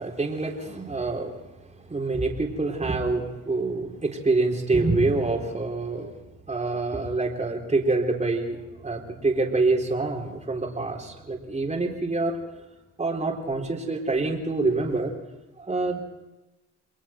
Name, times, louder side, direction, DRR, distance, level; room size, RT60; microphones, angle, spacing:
voice 1, 0.0-1.4 1.6-6.1 6.5-12.6 13.0-15.1 15.6-16.0, right 3 dB, 25° right, 0 dB, 4.1 m, -26 dB
29.5 x 21.5 x 4.6 m, 1.0 s
cardioid pair, 90°, 30 cm